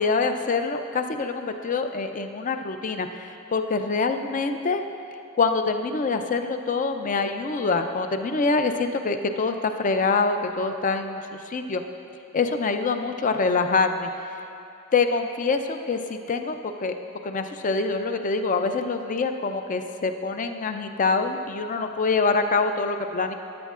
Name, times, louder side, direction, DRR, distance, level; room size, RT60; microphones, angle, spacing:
voice 1, 0.0-4.8 5.4-11.8 12.3-14.1 14.9-17.0 17.2-23.3, left 4 dB, 40° left, 7 dB, 0.5 m, -25 dB
13.5 x 10.0 x 2.5 m, 2.7 s
head